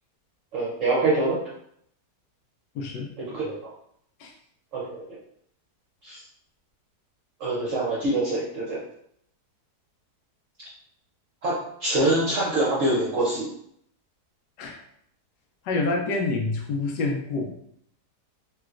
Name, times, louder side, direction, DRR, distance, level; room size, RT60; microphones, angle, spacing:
voice 1, 0.5-1.4 3.3-3.6 4.7-5.0 6.0-6.2 7.4-8.8 11.4-13.5, right 2 dB, 60° right, -7 dB, 0.9 m, -25 dB
voice 2, 2.7-3.1 4.2-4.3 14.6-14.8 15.6-17.5, left 3 dB, 90° left, 1 dB, 1.3 m, -27 dB
3.2 x 3.0 x 2.4 m, 0.70 s
omnidirectional pair, 1.8 m